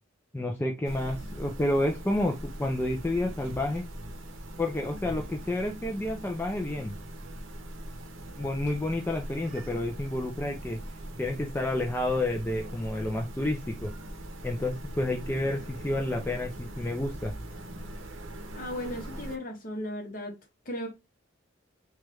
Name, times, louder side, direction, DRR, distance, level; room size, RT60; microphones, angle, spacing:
voice 1, 0.3-3.8 4.6-6.9 8.4-10.8 11.2-13.9 14.4-17.3, left 1 dB, 10° left, 0.3 m, -30 dB
sound 1, 0.8-19.4, right 1 dB, 80° right, 0.6 m, -41 dB
voice 2, 18.6-20.3 20.7-20.9, equal, 45° left, 0.9 m, -35 dB
3.2 x 2.3 x 3.0 m
head